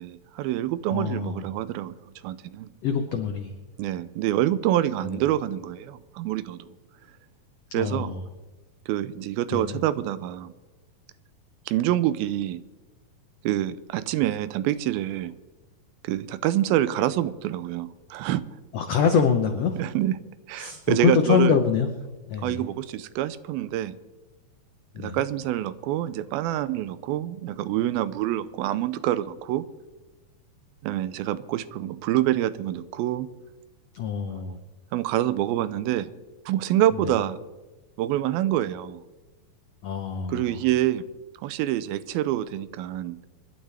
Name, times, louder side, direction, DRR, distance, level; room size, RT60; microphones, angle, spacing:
voice 1, 0.0-2.0 2.2-2.7 3.8-6.7 7.7-8.1 8.9-10.5 11.7-12.6 13.4-15.3 16.0-18.4 19.8-20.2 20.5-21.6 22.4-24.0 25.0-29.7 30.8-33.3 34.9-36.1 36.5-37.4 38.0-39.0 40.3-41.0 41.4-43.2, right 13 dB, 85° right, 15 dB, 2.5 m, -26 dB
voice 2, 0.9-1.4 2.8-3.5 5.1-5.2 7.7-8.2 9.5-9.8 18.7-19.8 20.6-21.9 22.3-22.6 24.9-25.2 33.9-34.6 36.9-37.1 39.8-40.6, left 6 dB, 85° left, 6 dB, 1.4 m, -25 dB
25.5 x 12.0 x 3.4 m, 1.1 s
omnidirectional pair, 4.2 m